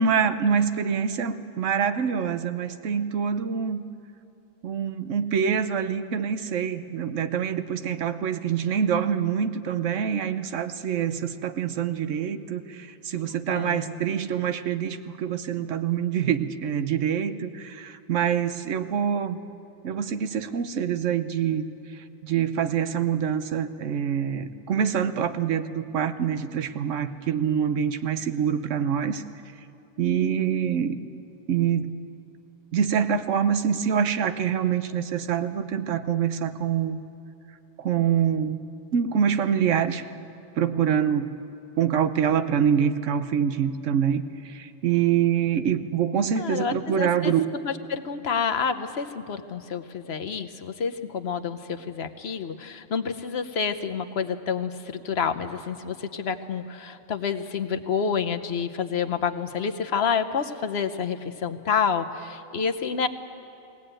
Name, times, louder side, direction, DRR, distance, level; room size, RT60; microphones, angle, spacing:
voice 1, 0.0-3.8 4.6-19.4 19.8-21.7 22.2-29.2 30.0-31.0 31.5-32.0 32.7-37.0 37.8-38.6 38.9-40.0 40.6-41.3 41.8-47.5, right 8 dB, 80° right, 10 dB, 1.2 m, -25 dB
voice 2, 13.5-14.0 46.3-63.1, left 6 dB, 60° left, 8 dB, 1.1 m, -29 dB
21.0 x 17.5 x 8.9 m, 2.7 s
omnidirectional pair, 1.3 m